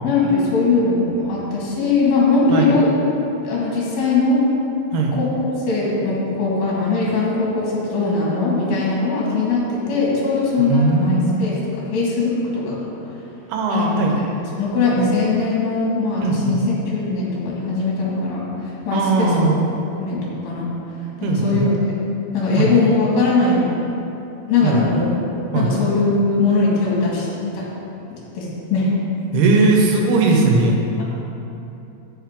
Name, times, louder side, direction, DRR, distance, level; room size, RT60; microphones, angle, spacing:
voice 1, 0.0-2.9 3.4-4.4 5.1-11.6 11.9-12.9 13.7-13.9 14.6-19.4 20.0-20.7 21.2-21.8 22.3-23.7 24.5-25.2 25.6-27.3 27.5-27.7 28.1-28.9 29.5-29.7, left 3 dB, 65° left, -5 dB, 3.6 m, -20 dB
voice 2, 10.6-11.5 13.5-14.1 16.2-16.5 18.9-19.6 21.2-21.6 22.6-22.7 24.6-24.8 25.5-25.7 29.3-30.8, right 3 dB, 80° right, 0 dB, 2.9 m, -18 dB
16.0 x 5.4 x 3.7 m, 2.9 s
omnidirectional pair, 4.6 m